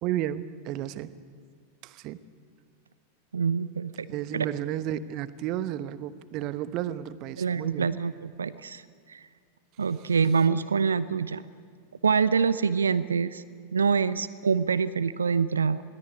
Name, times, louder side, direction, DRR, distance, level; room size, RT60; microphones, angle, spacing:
voice 1, 0.0-1.1 1.8-2.2 4.1-8.0, right 12 dB, 40° right, 14 dB, 1.0 m, -32 dB
voice 2, 3.3-4.5 7.4-8.8 9.1-9.2 9.8-11.4 12.0-13.4 13.7-15.8, right 6 dB, 70° right, 16 dB, 0.7 m, -25 dB
22.0 x 17.5 x 9.6 m, 2.1 s
figure-of-eight pair, 90°, 0 cm